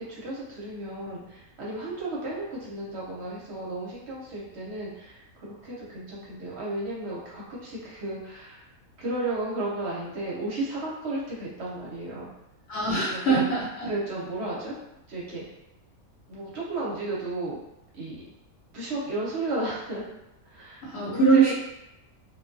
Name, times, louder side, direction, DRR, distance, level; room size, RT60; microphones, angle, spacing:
voice 1, 0.0-8.6 9.0-12.3 13.1-13.4 13.8-14.8 15.1-15.4 16.3-17.6 17.9-18.2 18.7-20.0 20.4-21.5, right 2 dB, 60° right, -5 dB, 0.8 m, -33 dB
voice 2, 12.7-13.9 20.8-21.5, right 4 dB, 55° left, -7 dB, 1.0 m, -22 dB
2.4 x 2.2 x 2.5 m, 0.86 s
omnidirectional pair, 1.5 m